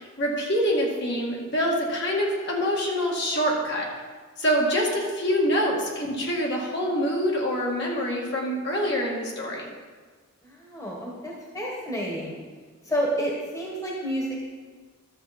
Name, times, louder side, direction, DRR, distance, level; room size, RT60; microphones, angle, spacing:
voice 1, 0.0-3.9 4.4-9.7, equal, 55° left, -2 dB, 1.9 m, -25 dB
voice 2, 10.4-12.4 12.8-14.4, equal, 15° left, -3 dB, 1.5 m, -30 dB
12.0 x 7.0 x 4.2 m, 1.5 s
head